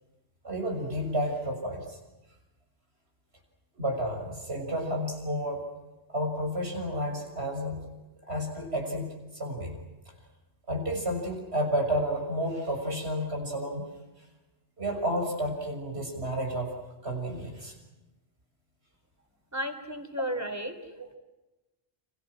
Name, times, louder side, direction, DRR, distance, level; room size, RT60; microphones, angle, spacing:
voice 1, 0.4-2.0 3.7-5.6 6.1-7.8 8.3-9.8 10.7-13.9 14.8-16.7 17.0-17.7, equal, 90° right, 2 dB, 6.7 m, -31 dB
voice 2, 19.5-21.1, equal, 15° right, 7 dB, 3.3 m, -34 dB
29.5 x 28.5 x 6.3 m, 1.0 s
omnidirectional pair, 1.0 m